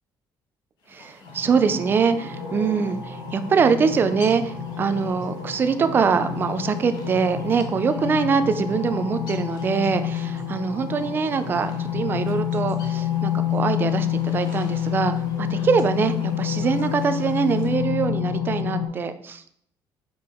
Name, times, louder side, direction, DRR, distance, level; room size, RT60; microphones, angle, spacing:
Hippo-Gargouillis+amb oiseaux, 0.8-17.9, left 3 dB, 65° left, 1.4 m, -47 dB
voice 1, 0.9-19.5, right 5 dB, 30° right, 10 dB, 0.4 m, -23 dB
sound 1, 1.2-18.9, left 9 dB, 85° left, 1.8 m, -28 dB
5.4 x 5.2 x 4.4 m, 0.68 s
cardioid pair, 180°, 8 cm